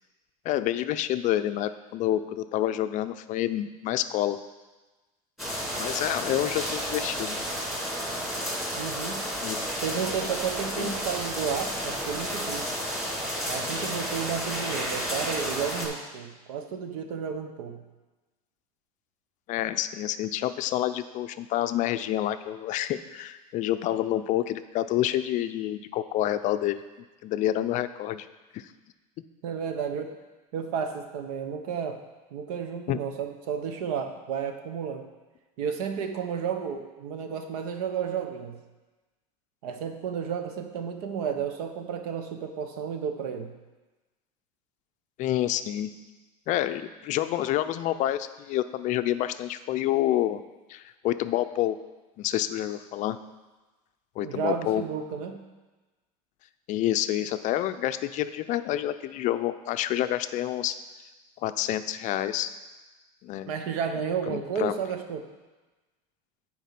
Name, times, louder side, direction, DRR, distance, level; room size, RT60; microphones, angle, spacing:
voice 1, 0.4-4.4 5.8-7.4 9.4-9.6 10.8-10.9 19.5-26.8 27.2-28.3 28.5-28.7 32.9-33.0 45.2-45.9 46.5-50.4 50.7-51.8 52.2-53.2 54.2-54.8 56.7-60.8 61.4-62.5 63.2-63.5 64.3-64.7, left 13 dB, 40° left, 12 dB, 0.4 m, -28 dB
sound 1, 5.4-15.9, equal, ahead, 2.4 m, -31 dB
voice 2, 8.8-9.3 9.8-12.7 13.4-17.8 29.4-30.1 30.5-32.0 32.3-35.1 35.6-38.6 39.6-43.6 54.2-55.4 63.5-65.3, right 7 dB, 75° right, 6 dB, 1.1 m, -32 dB
9.2 x 4.6 x 5.8 m, 1.2 s
supercardioid pair, 135°, 19 cm